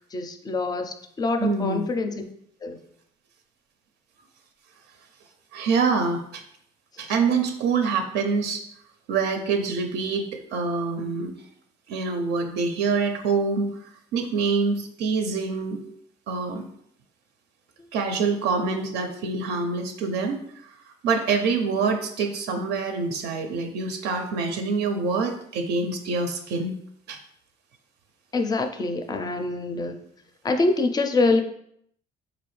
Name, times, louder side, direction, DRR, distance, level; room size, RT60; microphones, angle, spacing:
voice 1, 0.0-2.2 2.6-2.8 28.3-30.0 30.4-31.4, left 3 dB, 25° left, 7 dB, 0.4 m, -25 dB
voice 2, 1.4-1.8 5.5-6.4 7.0-8.6 9.1-11.3 11.9-13.7 14.1-15.8 16.3-16.6 17.9-20.4 21.0-26.7 27.1-27.2, right 4 dB, 80° right, 5 dB, 0.5 m, -25 dB
4.0 x 2.5 x 3.1 m, 0.70 s
cardioid pair, 110°, 17 cm